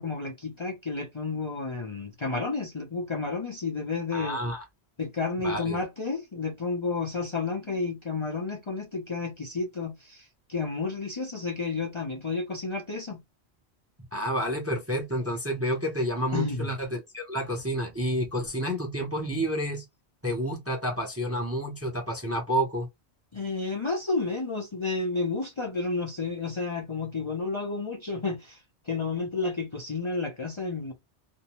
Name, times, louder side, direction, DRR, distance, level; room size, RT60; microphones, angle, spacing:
voice 1, 0.0-4.4 5.0-13.2 16.3-16.7 23.3-30.9, left 4 dB, 35° left, 0.6 m, -31 dB
voice 2, 4.1-4.6 5.4-5.8 14.1-19.8 20.2-22.9, equal, 15° right, 0.6 m, -29 dB
2.6 x 2.1 x 2.9 m
omnidirectional pair, 1.1 m